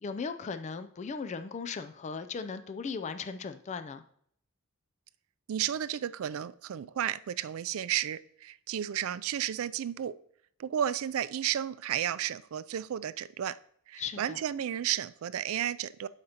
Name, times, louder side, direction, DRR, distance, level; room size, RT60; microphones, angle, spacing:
voice 1, 0.0-4.0 14.0-14.4, left 5 dB, 35° left, 10 dB, 0.4 m, -37 dB
voice 2, 5.5-10.2 10.6-13.6 13.9-16.1, right 10 dB, 70° right, 16 dB, 0.3 m, -33 dB
12.0 x 5.0 x 2.8 m, 0.66 s
head